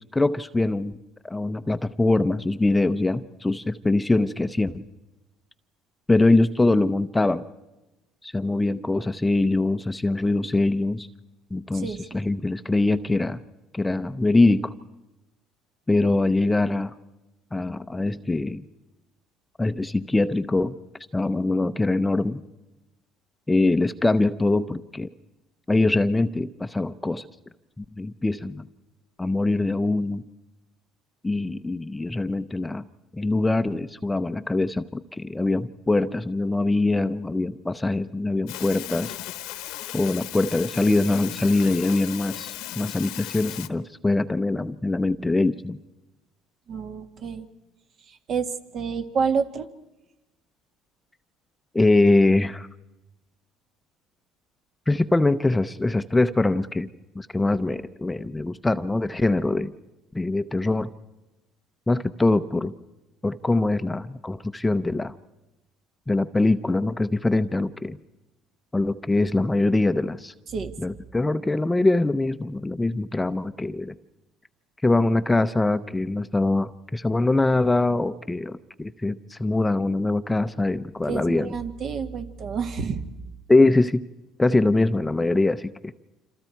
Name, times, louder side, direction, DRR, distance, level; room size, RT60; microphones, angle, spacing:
voice 1, 0.1-0.9 1.2-4.8 6.1-7.4 8.2-11.1 11.5-13.4 13.7-14.7 15.9-16.9 17.5-18.6 19.6-20.8 21.1-22.4 23.5-25.1 25.7-27.2 27.8-28.6 29.2-30.2 31.2-32.8 33.1-39.2 39.9-45.8 51.7-52.7 54.9-56.9 57.1-59.7 60.1-60.9 61.9-62.7 63.2-65.1 66.1-68.0 68.7-70.3 70.8-73.9 74.8-81.5 83.5-84.0 84.4-85.9, left 2 dB, 10° left, 12 dB, 0.7 m, -23 dB
voice 2, 11.7-12.1 46.7-47.5 48.1-49.7 70.5-70.7 81.1-83.0, right 6 dB, 50° right, 7 dB, 1.9 m, -29 dB
sound 1, 38.5-43.7, left 15 dB, 80° left, 1.2 m, -36 dB
27.0 x 27.0 x 4.6 m, 1.0 s
supercardioid pair, 95°, 0 cm